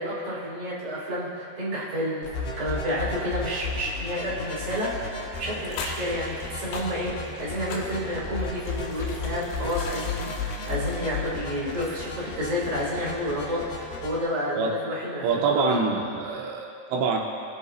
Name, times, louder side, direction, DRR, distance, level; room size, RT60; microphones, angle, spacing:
voice 1, 0.0-15.6, equal, 30° right, -9 dB, 2.9 m, -30 dB
sound 1, 2.2-14.2, left 3 dB, 70° left, 2.3 m, -34 dB
sound 2, 4.7-12.3 12.5-12.6, left 4 dB, 90° left, 3.8 m, -41 dB
voice 2, 15.2-17.2, right 4 dB, 75° right, -1 dB, 2.9 m, -25 dB
22.0 x 8.0 x 2.8 m, 2.5 s
omnidirectional pair, 5.9 m